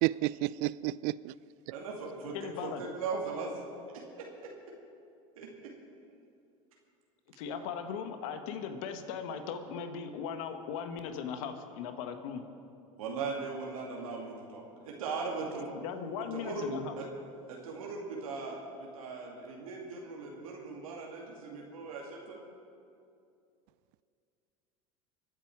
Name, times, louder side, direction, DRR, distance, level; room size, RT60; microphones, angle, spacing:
voice 1, 0.0-1.3, right 18 dB, 60° right, 20 dB, 0.4 m, -30 dB
voice 2, 1.7-2.4 2.6-3.5 3.9-4.5 5.4-5.7 13.0-15.7 16.3-17.1 17.5-22.4, right 4 dB, 85° right, -2 dB, 2.5 m, -39 dB
voice 3, 2.3-2.8 7.3-12.4 15.7-16.9, left 6 dB, 70° left, 7 dB, 1.4 m, -38 dB
24.5 x 9.9 x 4.8 m, 2.5 s
hypercardioid pair, 95°, 17 cm